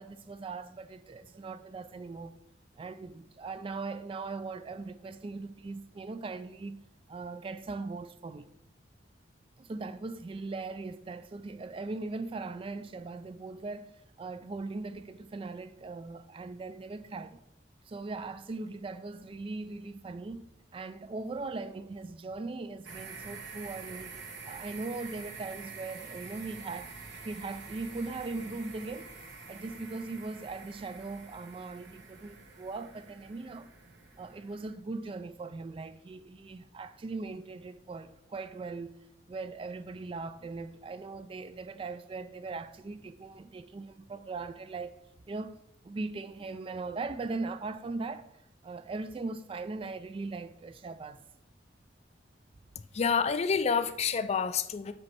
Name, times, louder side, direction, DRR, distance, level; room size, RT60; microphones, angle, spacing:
voice 1, 0.0-2.4 2.8-6.8 7.1-8.5 9.6-13.9 14.2-17.4 17.9-20.5 20.7-24.2 24.4-29.1 29.5-33.7 34.2-39.0 39.3-45.0 45.3-45.6 45.8-48.3 48.6-51.2, right 3 dB, 30° right, 0.3 m, -39 dB
sound 1, 22.8-34.8, right 4 dB, 80° right, 1.0 m, -47 dB
voice 2, 52.9-54.9, left 6 dB, 35° left, 0.4 m, -28 dB
7.6 x 3.1 x 5.9 m
head